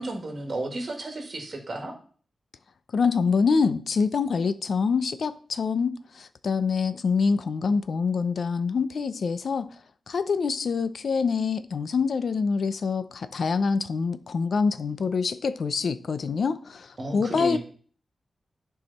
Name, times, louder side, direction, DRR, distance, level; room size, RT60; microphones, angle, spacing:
voice 1, 0.0-1.9 17.0-17.6, right 2 dB, 40° right, 2.0 m, -33 dB
voice 2, 2.9-9.7 10.1-17.6, left 5 dB, 60° left, 0.5 m, -25 dB
10.5 x 4.7 x 4.1 m
wide cardioid pair, 145°, 0 cm